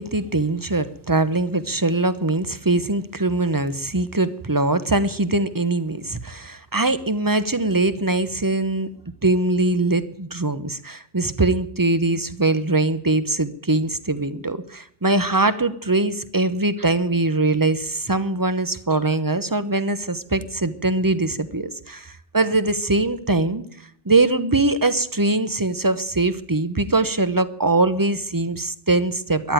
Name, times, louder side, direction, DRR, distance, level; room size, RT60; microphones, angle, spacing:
voice 1, 0.0-8.9 9.2-23.6 24.0-29.5, right 2 dB, 20° right, 13 dB, 0.9 m, -22 dB
13.5 x 10.5 x 9.1 m, 0.72 s
omnidirectional pair, 1.2 m